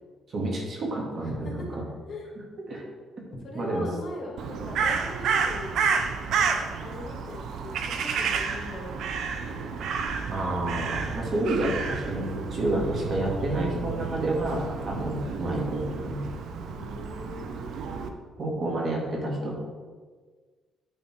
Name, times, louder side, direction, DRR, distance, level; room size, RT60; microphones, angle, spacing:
voice 1, 0.3-1.8 2.7-2.8 3.6-3.9 10.3-16.3 18.4-19.6, right 1 dB, 50° right, -2 dB, 2.1 m, -29 dB
voice 2, 1.2-1.5 2.1-2.3 3.4-5.8 6.3-9.6 14.9-15.3 16.7-17.7, left 1 dB, 50° left, -1 dB, 2.1 m, -41 dB
Crow, 4.4-18.1, right 5 dB, 75° right, 0.6 m, -30 dB
9.4 x 4.2 x 4.4 m, 1.5 s
cardioid pair, 90°, 0 cm